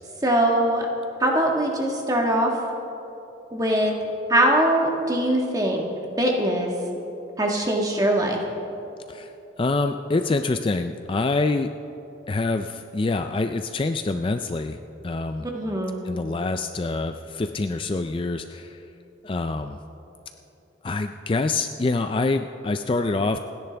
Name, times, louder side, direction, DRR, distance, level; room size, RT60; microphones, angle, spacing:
voice 1, 0.2-0.9 1.2-2.5 3.5-3.9 4.3-5.8 6.2-6.7 7.4-8.4 15.5-16.0, right 1 dB, 20° right, 0 dB, 1.5 m, -22 dB
voice 2, 9.6-11.7 12.3-14.8 15.0-15.5 16.0-18.8 19.2-19.8 20.8-23.4, left 3 dB, 25° left, 7 dB, 0.3 m, -26 dB
27.5 x 10.5 x 3.4 m, 3.0 s
head